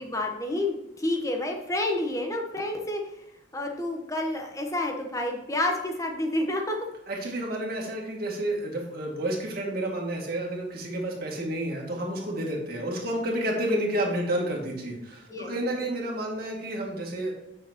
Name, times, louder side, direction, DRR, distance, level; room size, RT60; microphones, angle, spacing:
voice 1, 0.0-3.2 3.5-6.8 15.3-15.8, left 1 dB, 15° left, 2 dB, 1.1 m, -29 dB
voice 2, 7.1-17.3, right 1 dB, 50° right, -2 dB, 2.2 m, -30 dB
8.7 x 6.5 x 2.9 m, 0.90 s
head